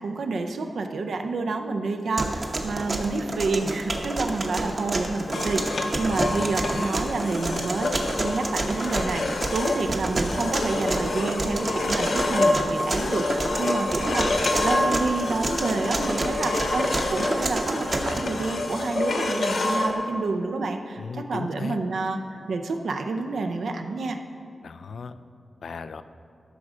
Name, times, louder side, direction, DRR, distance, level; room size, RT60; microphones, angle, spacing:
voice 1, 0.0-7.9 8.2-21.0 21.3-22.2 22.5-24.2, right 3 dB, 80° right, 5 dB, 0.6 m, -28 dB
sound 1, 2.2-18.2, right 2 dB, 35° right, 0.9 m, -29 dB
sound 2, 5.3-19.9, left 2 dB, 60° left, 0.9 m, -28 dB
voice 2, 21.0-21.8 24.6-25.2 25.6-26.0, left 5 dB, 80° left, 12 dB, 0.4 m, -36 dB
13.0 x 6.3 x 5.0 m, 2.4 s
wide cardioid pair, 170°, 0 cm